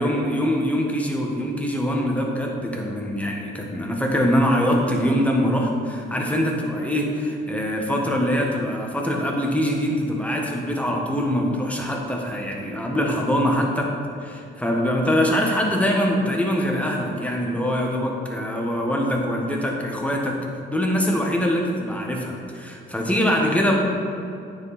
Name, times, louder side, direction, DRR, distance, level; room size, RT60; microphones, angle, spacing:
voice 1, 0.0-13.9 14.2-20.4 20.7-23.8, equal, 5° left, 0 dB, 1.3 m, -23 dB
9.4 x 4.8 x 4.1 m, 2.6 s
cardioid pair, 90°, 20 cm